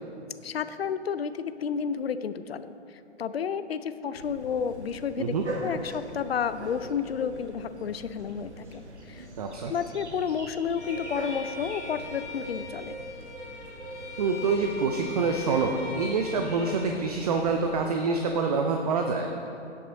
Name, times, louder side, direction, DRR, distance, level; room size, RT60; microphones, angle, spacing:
voice 1, 0.4-5.3 5.6-9.3 9.7-13.0, left 7 dB, 60° left, 13 dB, 0.6 m, -31 dB
sound 1, 4.1-17.9, right 2 dB, 70° right, 1.4 m, -42 dB
voice 2, 9.4-9.7 14.2-19.3, right 4 dB, 35° right, 4 dB, 0.6 m, -26 dB
Bowed string instrument, 10.8-17.0, left 3 dB, 85° left, 1.6 m, -42 dB
17.0 x 6.1 x 4.0 m, 2.7 s
figure-of-eight pair, 130°, 35 cm